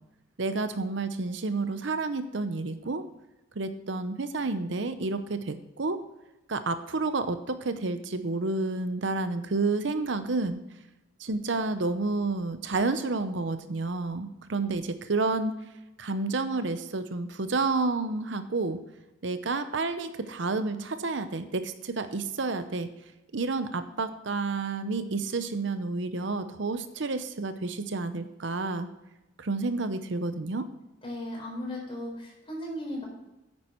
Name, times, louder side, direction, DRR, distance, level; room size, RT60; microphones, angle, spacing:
voice 1, 0.4-3.0 3.6-6.0 6.5-10.6 11.2-15.5 16.0-18.8 19.2-22.9 23.3-28.9 29.4-30.7, right 3 dB, 65° right, 10 dB, 0.7 m, -30 dB
voice 2, 31.0-33.0, left 1 dB, 25° left, -2 dB, 4.4 m, -36 dB
9.6 x 9.1 x 4.5 m, 0.96 s
head